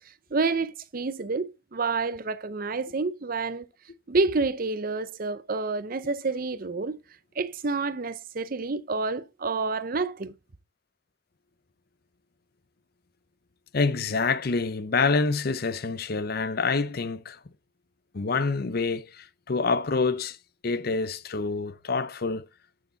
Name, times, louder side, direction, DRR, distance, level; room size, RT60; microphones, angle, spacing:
voice 1, 0.3-3.7 4.1-7.0 7.4-10.3, right 3 dB, 45° right, 0.6 m, -28 dB
voice 2, 13.7-17.4 18.1-20.4 20.6-22.4, left 4 dB, 50° left, 0.6 m, -27 dB
12.5 x 6.4 x 4.0 m
head